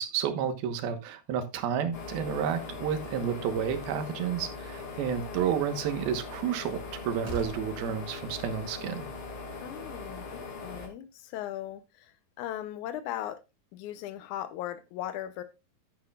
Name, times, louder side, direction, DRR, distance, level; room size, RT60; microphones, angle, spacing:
voice 1, 0.0-9.1, right 8 dB, 75° right, 3.1 m, -31 dB
sound 1, 1.9-10.9, left 3 dB, 45° left, 2.2 m, -41 dB
Slam, 4.8-5.2 6.7-6.8 7.2-7.8, right 2 dB, 30° right, 4.2 m, -41 dB
voice 2, 9.6-13.4 13.7-15.4, left 12 dB, 80° left, 1.7 m, -38 dB
11.0 x 9.5 x 2.4 m
omnidirectional pair, 4.4 m